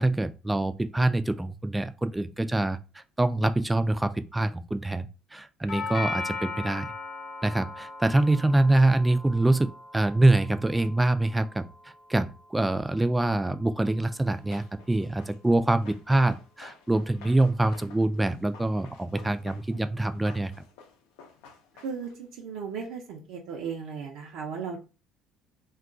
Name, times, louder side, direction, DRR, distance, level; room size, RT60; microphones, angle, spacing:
voice 1, 0.0-6.9 7.4-20.5, right 2 dB, 10° right, 0.3 m, -25 dB
Doorbell, 5.7-13.7, left 3 dB, 50° left, 0.6 m, -39 dB
Run, 14.1-22.3, left 5 dB, 90° left, 0.6 m, -52 dB
voice 2, 21.7-24.8, right 6 dB, 80° right, 0.6 m, -36 dB
2.3 x 2.2 x 3.7 m
cardioid pair, 100°, 0 cm